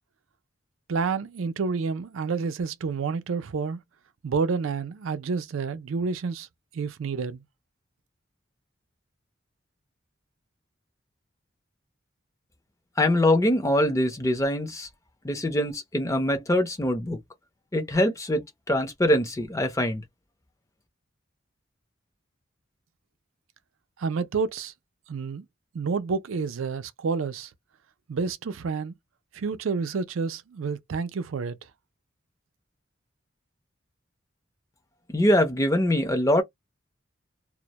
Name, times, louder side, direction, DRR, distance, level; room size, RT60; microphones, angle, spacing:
voice 1, 0.9-3.8 4.2-6.5 6.7-7.4 24.0-24.7 25.1-25.4 25.7-27.5 28.1-28.9 29.3-31.6, right 5 dB, 90° right, 0.4 m, -29 dB
voice 2, 13.0-14.9 15.2-17.2 17.7-20.0 35.1-36.4, left 1 dB, 15° left, 0.6 m, -23 dB
2.1 x 2.1 x 2.8 m
head